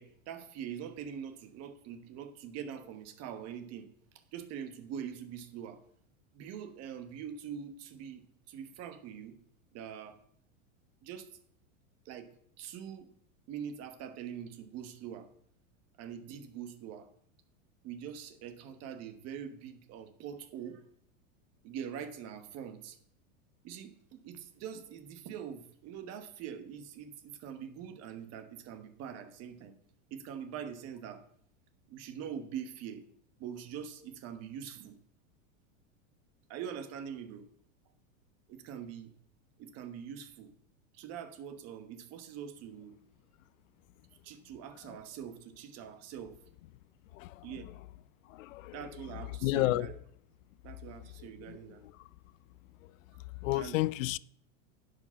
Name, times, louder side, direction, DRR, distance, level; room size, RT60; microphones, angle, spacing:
voice 1, 0.0-3.9 4.3-5.8 6.3-9.4 9.7-10.2 11.0-11.3 12.0-12.3 12.6-13.1 13.5-15.3 16.0-17.1 17.8-20.8 21.6-23.0 23.6-29.7 30.1-31.2 31.9-33.0 33.4-35.0 36.5-37.5 38.5-39.1 39.6-40.5 40.9-43.0 44.2-46.4 47.4-47.7 48.7-49.9 50.6-51.8 53.5-53.9, right 8 dB, 40° right, 1.2 m, -43 dB
voice 2, 48.3-48.8 49.4-49.9 51.5-51.6 53.4-54.2, left 17 dB, 70° left, 0.5 m, -30 dB
10.5 x 5.1 x 5.7 m
supercardioid pair, 135°, 40 cm